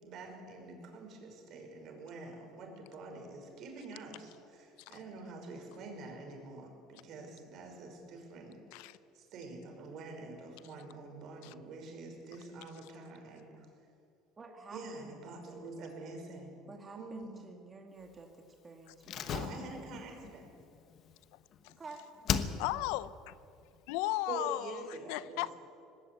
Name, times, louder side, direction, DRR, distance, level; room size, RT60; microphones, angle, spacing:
voice 1, 0.0-13.7 14.7-16.6 17.0-17.3 19.3-20.5 24.3-25.5, right 3 dB, 50° right, 3 dB, 5.5 m, -46 dB
voice 2, 14.4-15.4 16.7-19.4 21.7-22.0, right 3 dB, 20° right, 2 dB, 2.2 m, -50 dB
Slam, 19.0-21.8 22.2-23.0 23.3-23.4, left 8 dB, 45° left, 1.1 m, -37 dB
voice 3, 22.6-23.3 23.9-25.5, left 17 dB, 80° left, 16 dB, 0.7 m, -35 dB
19.5 x 16.5 x 9.6 m, 2.5 s
cardioid pair, 130°, 0 cm